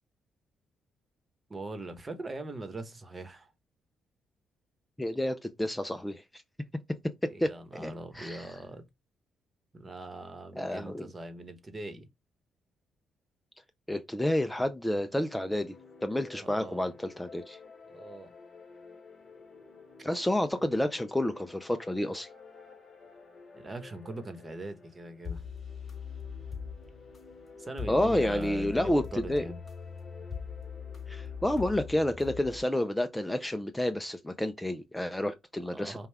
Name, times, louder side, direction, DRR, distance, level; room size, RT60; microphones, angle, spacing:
voice 1, 1.5-3.5 7.3-8.9 9.7-12.1 16.3-16.9 17.9-18.3 23.5-25.4 27.6-29.6 35.7-36.1, right 2 dB, 25° right, 1.1 m, -41 dB
voice 2, 5.0-6.4 7.4-8.5 10.6-11.1 13.9-15.7 16.0-17.6 20.0-22.3 27.9-29.5 31.1-36.1, left 1 dB, 10° left, 0.4 m, -30 dB
sound 1, 15.1-32.6, left 6 dB, 30° left, 3.0 m, -44 dB
5.3 x 2.3 x 3.4 m
cardioid pair, 90°, 0 cm